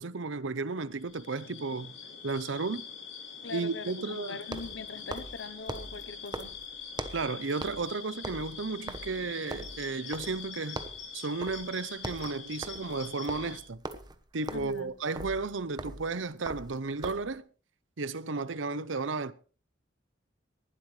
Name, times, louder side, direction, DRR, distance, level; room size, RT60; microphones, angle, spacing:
voice 1, 0.0-1.9 2.2-2.9 3.5-4.4 7.1-10.8 11.1-13.8 14.3-17.4 18.0-19.3, right 3 dB, 75° right, 0.8 m, -33 dB
sound 1, 0.9-13.6, left 6 dB, 85° left, 5.9 m, -44 dB
sound 2, 1.1-1.2 4.4-7.3 7.6-7.9 8.2-10.5 10.8-11.1 11.4-11.7 11.9-17.4, right 2 dB, 20° right, 1.1 m, -41 dB
voice 2, 3.4-6.5 14.5-14.9, left 4 dB, 70° left, 1.0 m, -42 dB
19.5 x 12.0 x 3.3 m
head